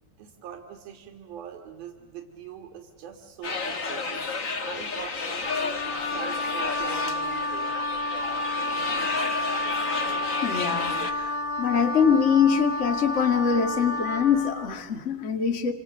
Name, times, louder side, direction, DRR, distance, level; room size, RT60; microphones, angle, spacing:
voice 1, 0.2-4.3 4.6-7.7, right 8 dB, 80° right, 4 dB, 3.5 m, -42 dB
sound 1, 3.4-11.1, left 4 dB, 85° left, 0.7 m, -32 dB
Wind instrument woodwind instrument, 5.4-14.6, left 1 dB, 10° right, 5.8 m, -30 dB
voice 2, 10.4-15.7, left 6 dB, 30° left, 6 dB, 1.6 m, -24 dB
28.0 x 28.0 x 6.6 m, 1.1 s
omnidirectional pair, 4.2 m